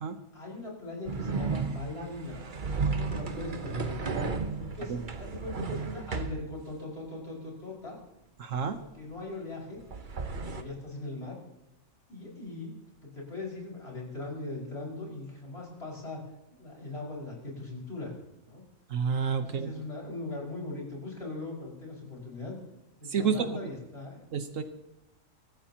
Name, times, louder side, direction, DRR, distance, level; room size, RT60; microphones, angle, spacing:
voice 1, 0.3-2.4 2.8-4.0 4.6-8.0 8.8-9.8 10.5-11.4 12.1-12.7 13.0-16.2 16.5-18.1 18.4-18.6 19.4-22.6 23.0-24.2, left 2 dB, 50° left, -3 dB, 5.9 m, -40 dB
sound 1, 1.1-6.4 9.8-10.6, right 4 dB, 40° right, 1.0 m, -33 dB
voice 2, 8.4-8.8 18.9-19.7 23.1-23.5 24.3-24.6, right 6 dB, 70° right, 8 dB, 1.4 m, -29 dB
23.5 x 17.0 x 3.0 m, 0.85 s
omnidirectional pair, 1.4 m